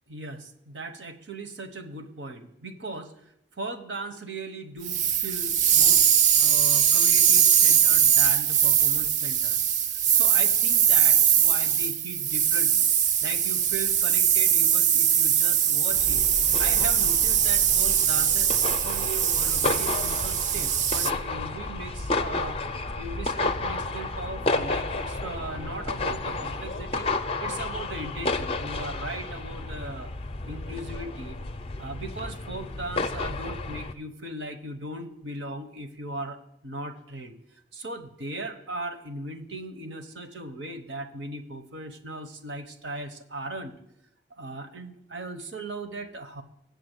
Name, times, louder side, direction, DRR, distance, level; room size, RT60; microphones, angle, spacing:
voice 1, 0.1-3.1 3.6-6.0 6.3-9.6 9.9-12.9 13.2-16.3 16.6-22.6 23.0-27.1 27.4-30.1 30.4-31.4 31.8-37.3 37.7-43.8 44.4-46.4, right 2 dB, 80° right, 8 dB, 1.0 m, -38 dB
sound 1, 4.8-21.1, right 9 dB, 40° right, 0.4 m, -21 dB
sound 2, 15.9-33.9, left 3 dB, 30° left, 0.5 m, -32 dB
8.5 x 6.7 x 8.1 m, 0.80 s
head